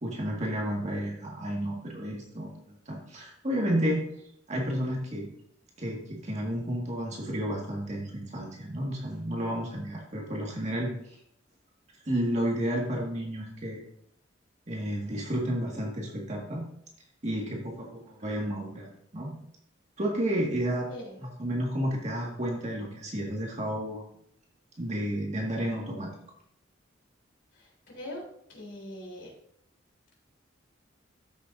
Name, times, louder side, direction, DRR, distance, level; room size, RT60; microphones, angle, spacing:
voice 1, 0.0-2.5 2.9-4.0 4.5-5.3 5.8-11.2 12.1-13.8 14.7-16.7 17.2-19.3 20.0-20.9 21.4-24.0 24.8-26.1, equal, 35° right, -2 dB, 1.8 m, -31 dB
voice 2, 27.5-28.2 28.5-29.3, left 1 dB, 65° left, -1 dB, 3.6 m, -42 dB
13.5 x 6.8 x 2.6 m, 0.74 s
head